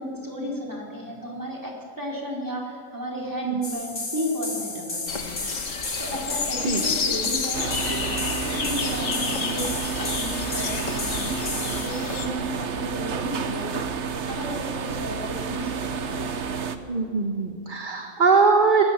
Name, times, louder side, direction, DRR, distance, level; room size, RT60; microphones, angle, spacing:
voice 1, 0.0-1.7 2.0-5.4 6.0-9.8 10.2-13.8 14.3-16.3, equal, 15° right, -2 dB, 4.1 m, -33 dB
sound 1, 3.6-11.9, left 3 dB, 45° left, 2.5 m, -33 dB
sound 2, 5.1-12.3, left 5 dB, 65° left, 1.6 m, -31 dB
sound 3, 7.5-16.8, right 5 dB, 55° right, 1.3 m, -30 dB
voice 2, 16.9-18.8, right 4 dB, 35° right, 3 dB, 1.5 m, -21 dB
20.0 x 18.5 x 7.4 m, 2.1 s
omnidirectional pair, 1.5 m